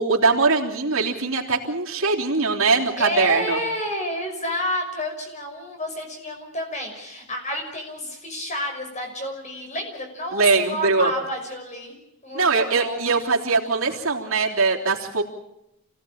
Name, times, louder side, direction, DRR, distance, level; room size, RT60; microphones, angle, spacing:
voice 1, 0.0-3.6 10.3-11.1 12.3-15.2, right 4 dB, 70° right, -1 dB, 3.4 m, -21 dB
voice 2, 3.0-12.0 12.2-13.0, equal, 30° left, 3 dB, 5.9 m, -30 dB
27.5 x 17.5 x 8.8 m, 0.86 s
head